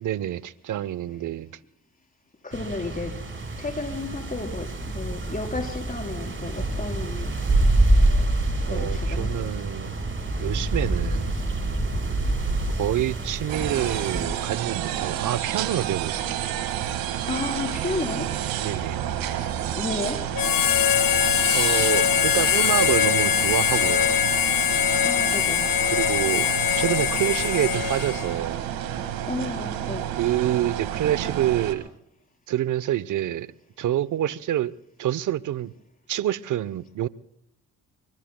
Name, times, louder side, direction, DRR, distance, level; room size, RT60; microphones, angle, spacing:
voice 1, 0.0-1.5 8.7-10.0 10.4-11.4 12.7-16.5 18.6-19.1 21.5-24.2 25.9-28.6 30.2-31.9 32.5-33.5 33.8-34.7 35.0-35.7 36.1-37.1, right 12 dB, 60° right, 0.8 m, -27 dB
voice 2, 2.4-3.1 3.6-7.3 8.7-9.5 17.3-18.3 19.7-20.2 25.0-25.6 29.3-30.1, left 3 dB, 25° left, 4.3 m, -32 dB
sound 1, 2.5-14.3, right 2 dB, 35° right, 5.1 m, -26 dB
sound 2, 13.5-31.7, right 10 dB, 90° right, 1.8 m, -30 dB
Harmonica, 20.3-28.4, left 10 dB, 75° left, 1.2 m, -22 dB
26.0 x 24.5 x 2.2 m
supercardioid pair, 60°, 34 cm